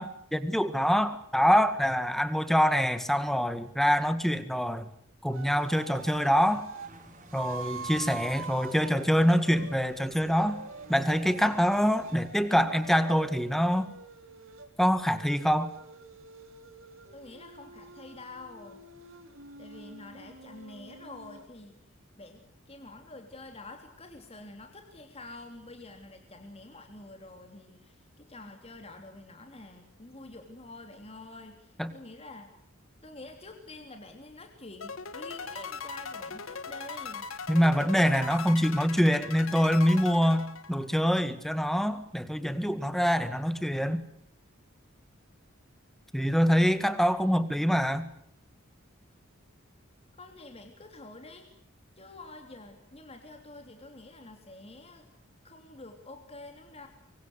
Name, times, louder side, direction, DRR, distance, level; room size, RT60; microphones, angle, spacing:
voice 1, 0.0-4.9 5.2-6.7 7.3-10.6 10.9-13.9 14.8-15.7 31.8-31.9 37.5-44.0 46.1-48.1, equal, ahead, 12 dB, 1.8 m, -25 dB
sound 1, 5.3-6.9 7.3-14.7 15.1-21.4, right 4 dB, 75° right, 3.1 m, -45 dB
sound 2, 5.8-12.2, right 2 dB, 40° right, 5.6 m, -53 dB
voice 2, 17.1-18.8 19.6-21.8 22.1-32.5 33.0-37.3 47.2-47.7 50.1-51.5 52.0-55.1 55.4-56.9, left 2 dB, 30° left, 4 dB, 3.2 m, -47 dB
sound 3, 34.8-41.1, left 5 dB, 85° left, 1.7 m, -40 dB
25.0 x 24.5 x 8.2 m, 0.68 s
head